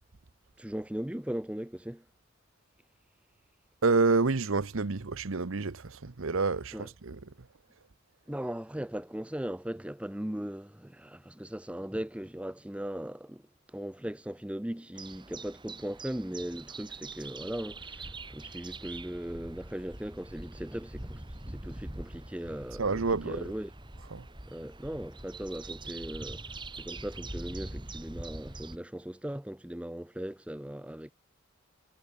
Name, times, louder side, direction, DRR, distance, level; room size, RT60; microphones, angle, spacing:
voice 1, 0.6-2.0 6.7-6.9 8.3-13.4 13.7-22.8 23.2-23.7 24.5-26.4 26.8-31.1, equal, 5° right, 0.5 m, -38 dB
voice 2, 3.8-7.5 22.8-23.5 24.1-24.3, right 4 dB, 70° right, 0.9 m, -28 dB
sound 1, 14.9-28.8, right 2 dB, 20° right, 2.2 m, -44 dB
head